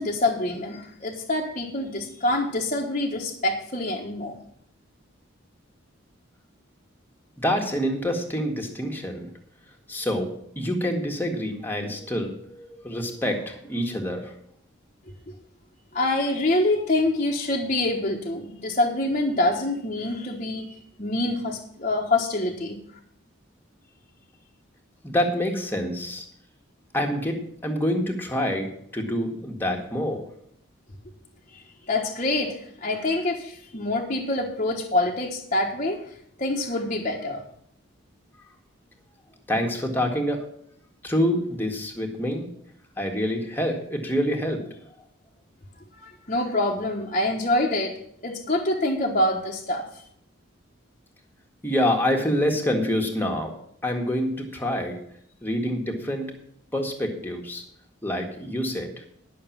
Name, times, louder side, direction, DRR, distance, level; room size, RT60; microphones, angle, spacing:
voice 1, 0.0-4.4 15.9-22.8 31.9-36.0 36.4-37.4 45.9-48.0 48.2-49.9, left 2 dB, 35° left, -1 dB, 1.3 m, -26 dB
voice 2, 7.4-9.3 9.9-14.3 25.0-26.3 26.9-30.2 39.5-40.5 41.0-42.5 43.0-44.7 51.6-53.5 53.8-55.0 55.4-56.3 56.7-57.6 58.0-59.1, equal, 10° left, 2 dB, 1.8 m, -26 dB
11.0 x 6.6 x 7.3 m, 0.68 s
head